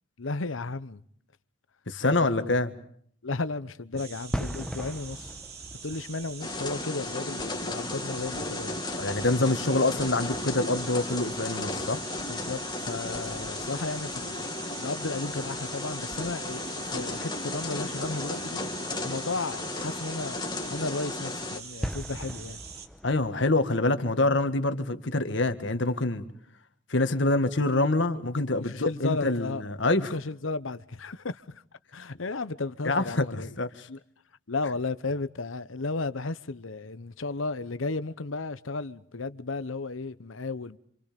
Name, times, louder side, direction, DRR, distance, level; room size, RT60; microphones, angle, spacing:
voice 1, 0.2-1.0 2.2-2.5 3.2-5.4 5.8-8.8 12.3-18.6 19.0-22.6 28.5-29.6 30.1-31.6 31.9-33.5 33.9-34.0 34.5-40.8, left 3 dB, 90° left, 1.0 m, -34 dB
voice 2, 1.9-2.7 9.0-12.0 23.0-26.2 26.9-30.1 32.9-33.7, left 2 dB, 65° left, 1.8 m, -26 dB
sound 1, 4.0-22.9, right 7 dB, 55° right, 2.7 m, -44 dB
sound 2, 4.2-23.6, equal, 5° left, 1.1 m, -44 dB
sound 3, 6.4-21.6, left 2 dB, 20° left, 2.0 m, -35 dB
28.0 x 26.5 x 5.3 m
head